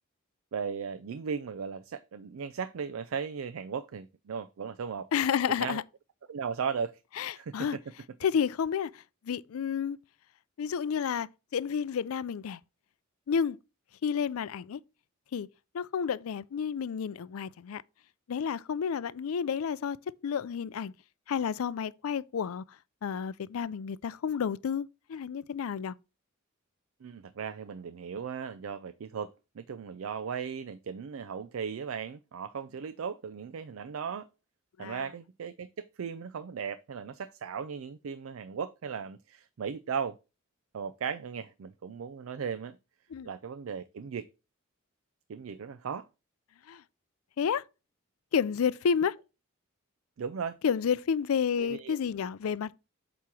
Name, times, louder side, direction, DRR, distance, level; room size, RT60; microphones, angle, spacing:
voice 1, 0.5-5.1 5.6-5.8 6.3-7.0 7.4-7.8 27.0-34.3 34.8-40.2 40.7-42.8 43.2-44.3 45.3-46.1 50.2-50.6 51.6-52.0, right 6 dB, 75° right, 0.4 m, -37 dB
voice 2, 5.1-5.8 7.2-7.8 8.2-10.0 10.6-12.6 13.3-13.6 14.0-14.8 15.3-15.5 15.7-17.8 18.3-20.0 20.2-20.9 21.3-22.6 23.0-25.9 34.8-35.1 43.1-43.3 46.7-46.8 47.4-47.6 48.3-49.2 50.6-52.8, left 7 dB, 90° left, 0.4 m, -30 dB
8.2 x 3.0 x 6.0 m
head